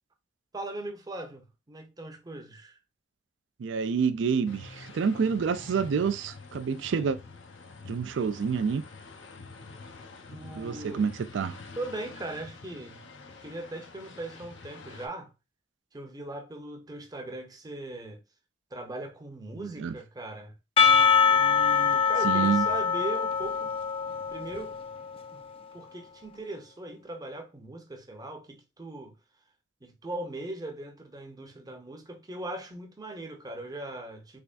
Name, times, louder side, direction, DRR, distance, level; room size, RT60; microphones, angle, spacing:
voice 1, 0.5-2.8 10.3-11.0 11.8-13.0 13.3-15.3 15.9-18.2 18.7-20.5 21.3-23.7 24.3-24.7 25.3-25.4 25.7-29.1 29.8-34.4, right 2 dB, 20° right, 0.6 m, -39 dB
voice 2, 3.6-7.2 7.9-8.8 10.6-11.6 19.6-20.0 22.2-22.6, right 6 dB, 75° right, 0.4 m, -28 dB
sound 1, 4.5-15.1, left 3 dB, 85° left, 0.7 m, -47 dB
Percussion / Church bell, 20.8-25.3, left 6 dB, 30° left, 0.3 m, -24 dB
3.4 x 3.4 x 2.4 m
head